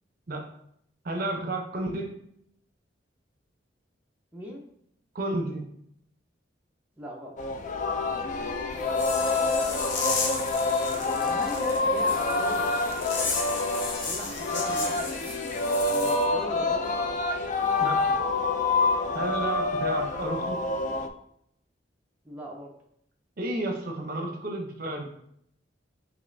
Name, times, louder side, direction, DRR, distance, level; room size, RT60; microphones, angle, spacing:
voice 1, 1.0-2.1 5.1-5.7 17.8-18.0 19.1-20.6 23.4-25.1, right 1 dB, 55° right, 2 dB, 0.7 m, -31 dB
voice 2, 4.3-4.6 7.0-7.4 8.8-8.9 10.9-12.7 14.1-15.3 15.8-16.9 22.2-22.7, equal, 10° right, -2 dB, 0.5 m, -40 dB
Singing, 7.4-21.1, left 3 dB, 45° left, 0.3 m, -27 dB
sound 1, 8.7-15.8, left 1 dB, 25° left, 1.3 m, -44 dB
sound 2, 9.0-16.2, left 4 dB, 80° left, 0.7 m, -34 dB
5.2 x 2.9 x 2.6 m, 0.71 s
head